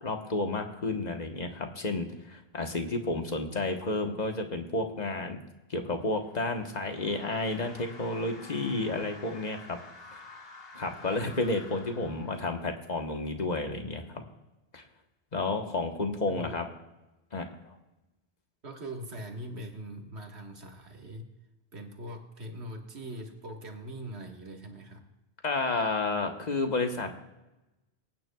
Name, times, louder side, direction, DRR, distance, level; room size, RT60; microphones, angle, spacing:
voice 1, 0.0-5.4 5.7-9.8 10.1-10.2 10.7-14.3 14.7-14.8 15.3-16.7 17.3-17.8 25.4-27.1, left 2 dB, 40° left, 4 dB, 1.3 m, -31 dB
sound 1, 5.9-12.9, left 2 dB, 65° left, 1.8 m, -50 dB
voice 2, 16.3-16.6 18.6-21.3 21.7-25.1, right 1 dB, 80° right, 2 dB, 1.9 m, -42 dB
25.0 x 9.4 x 2.3 m, 1.0 s
omnidirectional pair, 1.1 m